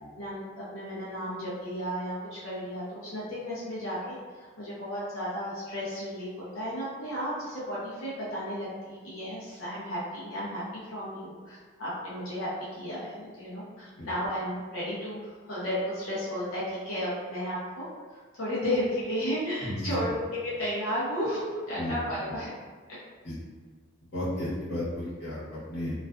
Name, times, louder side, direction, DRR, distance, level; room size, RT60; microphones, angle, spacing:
voice 1, 0.2-10.6 10.9-22.5, equal, 85° left, -9 dB, 0.7 m, -33 dB
voice 2, 19.6-19.9 21.8-21.9 23.2-23.3 24.1-25.9, left 1 dB, 55° left, -9 dB, 1.0 m, -33 dB
2.4 x 2.3 x 2.2 m, 1.5 s
head